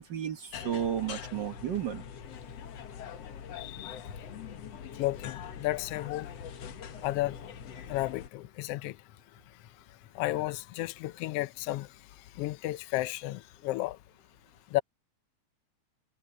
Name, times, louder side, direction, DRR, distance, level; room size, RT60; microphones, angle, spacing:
voice 1, 0.0-2.0, right 10 dB, 65° right, 1.1 m, -33 dB
sound 1, 0.5-8.3, left 8 dB, 60° left, 2.3 m, -43 dB
voice 2, 3.6-4.0 5.0-6.3 7.0-7.4 7.9-9.0 10.1-11.9 12.3-14.0 14.7-14.8, left 17 dB, 80° left, 1.3 m, -33 dB
omnidirectional pair, 3.4 m